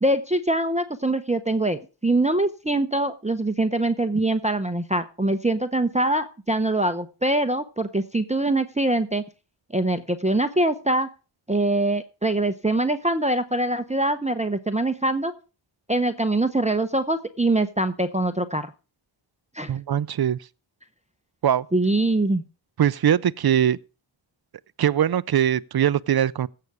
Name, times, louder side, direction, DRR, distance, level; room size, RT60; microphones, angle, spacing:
voice 1, 0.0-9.2 9.7-11.1 11.5-15.3 15.9-18.7 19.5-19.7 21.7-22.4, right 2 dB, 15° right, 0.7 m, -23 dB
voice 2, 19.7-20.4 21.4-21.6 22.8-23.8 24.8-26.5, right 10 dB, 50° right, 0.5 m, -21 dB
16.0 x 6.8 x 4.8 m
wide cardioid pair, 65°, 48 cm